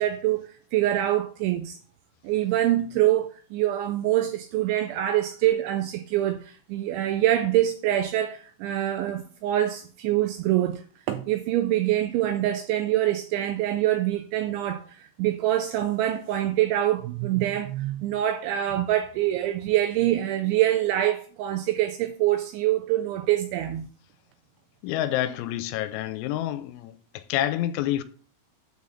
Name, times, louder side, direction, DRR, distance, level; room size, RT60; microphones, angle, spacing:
voice 1, 0.0-1.8 2.2-23.9, right 13 dB, 90° right, 2.7 m, -25 dB
voice 2, 24.8-28.0, left 13 dB, 90° left, 3.4 m, -28 dB
9.3 x 4.2 x 7.1 m
omnidirectional pair, 6.0 m